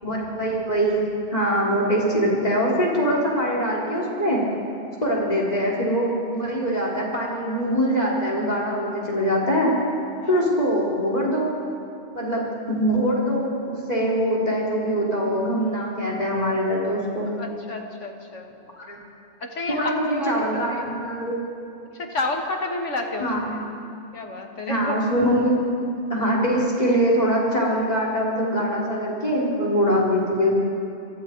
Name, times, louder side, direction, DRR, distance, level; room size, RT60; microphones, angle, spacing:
voice 1, 0.0-4.4 5.0-9.8 10.3-11.5 12.1-17.3 18.8-19.0 19.7-21.4 23.2-23.5 24.7-25.6 25.9-30.5, equal, 35° left, -4 dB, 4.7 m, -23 dB
voice 2, 17.4-18.5 19.4-20.4 20.7-20.9 21.9-23.6 24.1-25.0, left 2 dB, 75° left, 2 dB, 2.5 m, -30 dB
27.5 x 23.5 x 4.9 m, 2.7 s
omnidirectional pair, 1.3 m